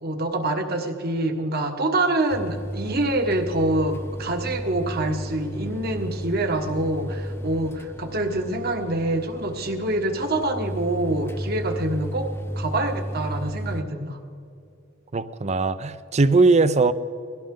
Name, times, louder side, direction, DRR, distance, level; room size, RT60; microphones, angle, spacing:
voice 1, 0.0-12.3 12.6-14.2, right 2 dB, 50° right, 1.4 m, -26 dB
sound 1, 2.3-13.8, equal, 10° left, 0.7 m, -33 dB
voice 2, 15.1-16.9, right 3 dB, 35° right, 0.5 m, -19 dB
22.0 x 16.5 x 3.8 m
head